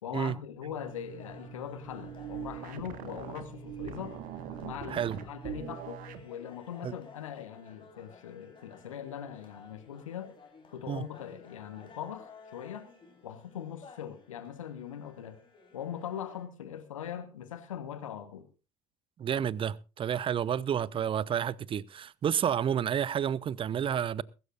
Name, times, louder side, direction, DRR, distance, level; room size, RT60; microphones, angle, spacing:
voice 1, 0.0-4.2 4.6-10.3 10.7-12.9 13.2-15.4 15.7-18.5, left 9 dB, 75° left, 1.2 m, -41 dB
sound 1, 0.6-6.3, right 8 dB, 55° right, 1.4 m, -42 dB
sound 2, 0.8-16.5, left 5 dB, 30° left, 3.9 m, -55 dB
voice 2, 19.2-24.2, right 9 dB, 30° right, 0.6 m, -30 dB
22.0 x 12.5 x 2.5 m
figure-of-eight pair, 55°, 17 cm